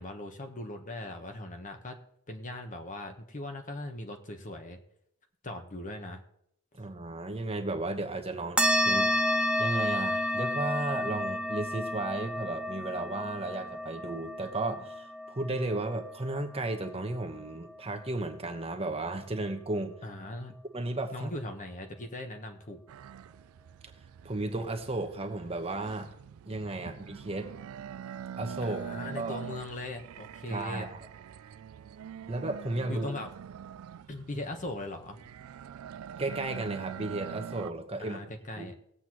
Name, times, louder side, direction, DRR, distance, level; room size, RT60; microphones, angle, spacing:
voice 1, 0.0-2.0 2.3-4.8 5.4-6.2 20.0-20.5 21.1-22.8 28.6-30.9 32.9-33.3 34.1-35.2 38.0-38.7, left 1 dB, 35° left, 5 dB, 1.1 m, -39 dB
voice 2, 6.8-9.1 9.6-19.9 20.7-21.3 24.2-26.1 26.5-27.5 28.4-28.8 29.2-29.4 30.5-31.0 32.3-33.1 36.2-38.2 38.6-38.7, right 2 dB, 30° right, 5 dB, 1.1 m, -34 dB
sound 1, 8.6-17.5, equal, 5° right, 0.6 m, -31 dB
sound 2, 22.9-37.7, right 8 dB, 75° right, 0.3 m, -44 dB
19.5 x 7.9 x 3.0 m, 0.74 s
head